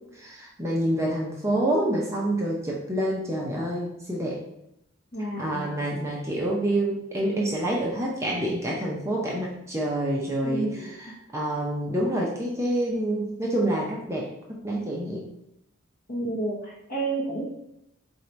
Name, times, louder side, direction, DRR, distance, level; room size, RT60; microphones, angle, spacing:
voice 1, 0.1-4.4 5.4-15.3, right 1 dB, 15° right, -3 dB, 0.6 m, -27 dB
voice 2, 5.1-5.8 10.4-10.9 16.1-17.4, right 2 dB, 40° left, -4 dB, 1.0 m, -30 dB
4.1 x 2.6 x 4.4 m, 0.81 s
head